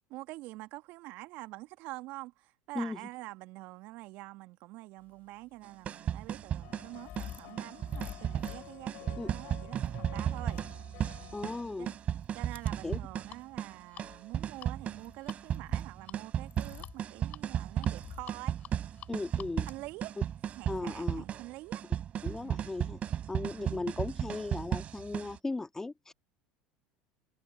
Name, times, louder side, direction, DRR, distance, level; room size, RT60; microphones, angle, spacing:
voice 1, 0.1-10.6 11.8-11.9 12.3-18.6 19.7-20.2 20.6-21.8 22.4-22.7 23.6-23.8, right 20 dB, 55° right, 1.7 m, -46 dB
sound 1, 5.4-21.1, left 11 dB, 45° left, 3.7 m, -51 dB
sound 2, 5.6-25.4, right 9 dB, 40° right, 3.4 m, -35 dB
sound 3, 6.6-11.7, left 25 dB, 60° left, 3.2 m, -51 dB
voice 2, 11.3-12.0 12.8-13.0 19.1-19.7 20.7-21.2 22.2-26.1, left 3 dB, 15° left, 1.9 m, -37 dB
hypercardioid pair, 75°, 4 cm